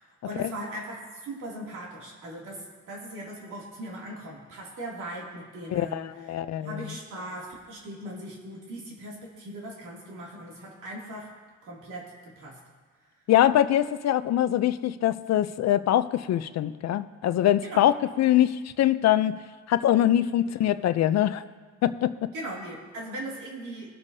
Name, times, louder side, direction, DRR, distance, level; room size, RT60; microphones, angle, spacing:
voice 1, 0.0-6.3 6.6-11.3 11.6-12.6 17.6-17.9 20.4-20.5 22.3-23.9, right 1 dB, 80° right, -3 dB, 2.7 m, -39 dB
voice 2, 5.7-6.8 13.3-19.4 19.7-21.4 21.8-22.2, left 12 dB, 60° left, 13 dB, 0.5 m, -23 dB
21.0 x 7.2 x 2.7 m, 1.4 s
cardioid pair, 90°, 30 cm